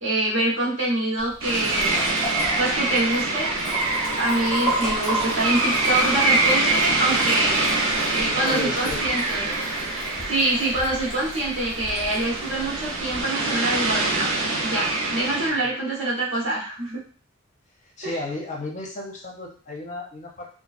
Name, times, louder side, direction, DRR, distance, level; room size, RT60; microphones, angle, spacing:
voice 1, 0.0-2.0 2.6-3.5 4.2-7.7 8.1-9.5 10.3-14.3 14.6-17.0 18.0-18.2, right 2 dB, 60° right, -4 dB, 1.1 m, -25 dB
Liquid, 1.2-13.2, equal, 5° left, 0.9 m, -33 dB
sound 1, 1.4-15.5, right 2 dB, 80° right, 0.7 m, -25 dB
voice 2, 8.2-9.0 15.5-15.7 18.0-20.5, left 2 dB, 35° left, 0 dB, 0.5 m, -34 dB
3.0 x 2.3 x 2.4 m, 0.42 s
head